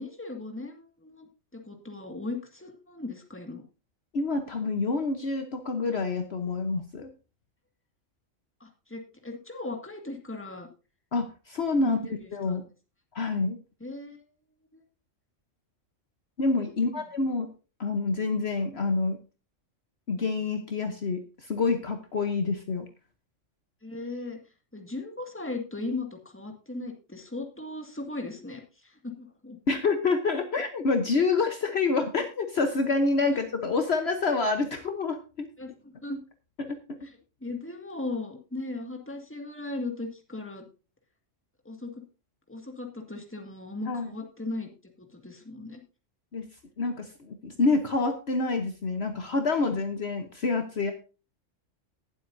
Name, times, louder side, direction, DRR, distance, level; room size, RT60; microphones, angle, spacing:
voice 1, 0.0-3.6 8.6-10.7 11.8-12.6 13.8-14.2 14.7-14.8 16.9-17.0 23.8-24.4 24.7-29.6 33.3-33.4 35.6-36.2 37.4-40.6 41.7-42.0 42.5-44.7 45.0-45.8, left 2 dB, 10° left, 2 dB, 1.9 m, -37 dB
voice 2, 4.1-7.1 11.1-12.0 12.3-12.6 13.1-13.6 16.4-17.5 17.8-19.2 20.1-22.9 29.7-35.5 36.6-37.1 43.9-44.1 46.3-46.5 46.8-50.9, left 3 dB, 55° left, 6 dB, 1.2 m, -27 dB
19.0 x 7.8 x 2.7 m, 0.32 s
omnidirectional pair, 1.3 m